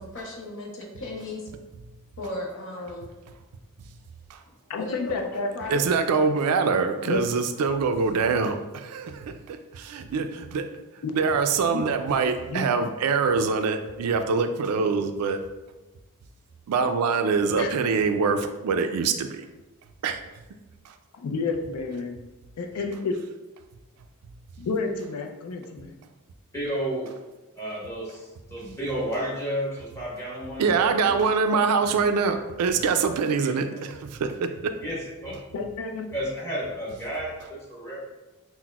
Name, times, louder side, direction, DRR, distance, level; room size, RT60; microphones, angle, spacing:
voice 1, 0.0-1.5 2.2-3.1 4.5-5.9, left 2 dB, 60° left, 0 dB, 0.7 m, -36 dB
voice 2, 4.7-5.5 7.1-7.2 11.0-11.4 11.7-11.8 12.5-12.6 17.6-17.7 21.1-22.2 22.6-23.1 24.6-26.0 35.5-36.1, left 4 dB, 85° left, 3 dB, 0.4 m, -30 dB
voice 3, 5.7-10.7 11.1-15.4 16.7-19.5 20.0-20.2 20.9-21.0 30.6-34.7, right 5 dB, 90° right, 8 dB, 0.4 m, -24 dB
voice 4, 26.5-27.1 27.5-31.6 33.4-33.5 34.8-35.4 36.1-38.0, equal, 10° left, -6 dB, 1.1 m, -32 dB
5.7 x 2.1 x 2.3 m, 1.1 s
head